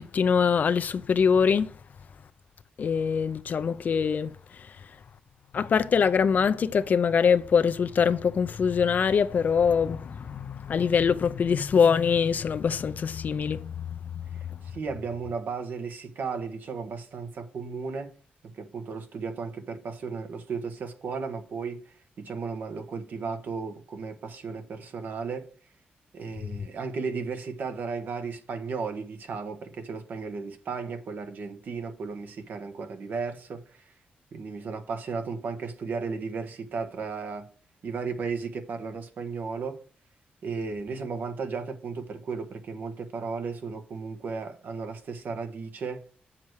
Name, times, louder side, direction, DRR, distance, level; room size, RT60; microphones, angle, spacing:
voice 1, 0.0-1.7 2.8-4.3 5.5-14.0, left 6 dB, 55° left, 0.6 m, -23 dB
voice 2, 14.6-18.1 18.4-21.8 22.2-25.5 26.1-33.8 34.3-37.5 37.8-39.8 40.4-46.0, right 5 dB, 65° right, 1.3 m, -34 dB
7.8 x 7.3 x 4.7 m
cardioid pair, 110°, 3 cm